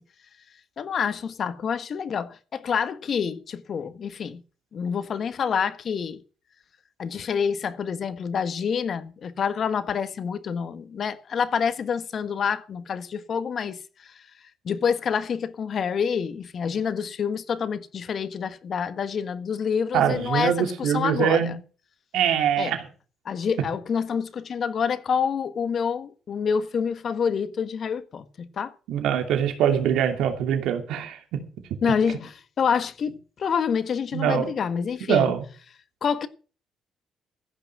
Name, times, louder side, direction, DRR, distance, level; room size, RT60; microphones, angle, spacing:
voice 1, 0.8-4.4 4.7-6.2 7.0-14.1 14.6-21.6 22.6-22.8 23.2-28.7 31.8-35.3 36.0-36.3, left 6 dB, 55° left, 1.5 m, -27 dB
voice 2, 19.9-21.5 22.1-22.8 28.9-31.2 34.1-34.5 35.1-35.4, right 9 dB, 85° right, 2.8 m, -23 dB
15.0 x 6.1 x 8.8 m
cardioid pair, 90°, 0 cm